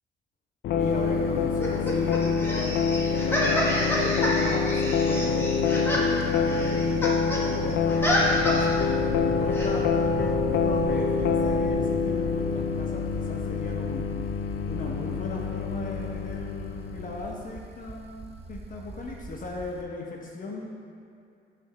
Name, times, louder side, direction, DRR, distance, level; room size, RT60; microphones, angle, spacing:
sound 1, 0.6-17.4, left 5 dB, 65° left, 0.5 m, -26 dB
voice 1, 0.7-6.8 7.4-14.1 14.6-20.7, left 3 dB, 40° left, -1 dB, 0.9 m, -37 dB
sound 2, 0.8-19.8, right 3 dB, 30° right, 0.7 m, -42 dB
sound 3, 1.6-7.4 7.7-8.8 9.5-9.7, equal, 10° left, 1.3 m, -28 dB
6.2 x 3.5 x 6.0 m, 2.6 s
cardioid pair, 90°, 20 cm